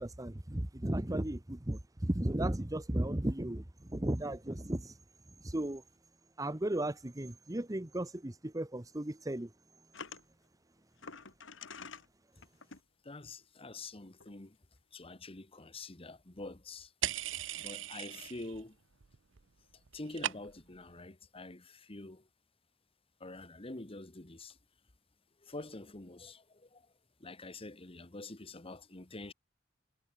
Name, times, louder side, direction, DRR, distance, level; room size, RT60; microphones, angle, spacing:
voice 1, 0.0-4.9 5.4-5.8 6.4-9.5, right 1 dB, 20° right, 1.1 m, -35 dB
sound 1, 9.9-10.2 11.0-12.1 12.4-12.8 13.9-14.0 14.2-14.3, left 5 dB, 85° left, 2.3 m, -47 dB
voice 2, 13.0-14.6 14.9-18.8 19.9-22.3 23.2-24.6 25.4-26.9 27.2-29.3, left 2 dB, 30° left, 1.5 m, -47 dB
sound 2, 17.0-18.6 18.9-19.4 19.7-20.8, right 11 dB, 80° right, 0.7 m, -38 dB
head